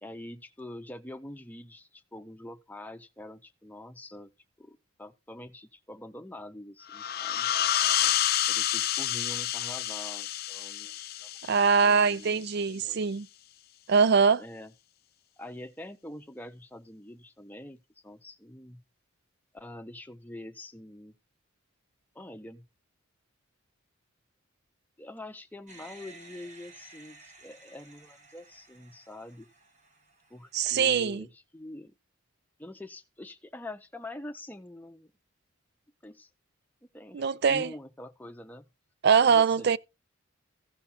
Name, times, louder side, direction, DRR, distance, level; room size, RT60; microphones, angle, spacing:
voice 1, 0.0-4.3 4.6-7.5 8.5-11.3 11.8-13.0 14.4-14.7 15.4-18.8 19.5-21.1 22.1-22.7 25.0-29.5 30.3-31.9 32.6-35.1 36.0-36.3 36.9-38.7 39.2-39.8, left 1 dB, 10° left, 0.7 m, -45 dB
sound 1, 6.9-12.3, left 12 dB, 50° left, 0.4 m, -29 dB
voice 2, 11.5-13.3 13.9-14.4 30.5-31.3 37.1-37.7 39.0-39.8, right 6 dB, 50° right, 0.4 m, -23 dB
sound 2, 25.7-31.1, right 3 dB, 35° right, 1.7 m, -54 dB
15.0 x 5.3 x 4.3 m
head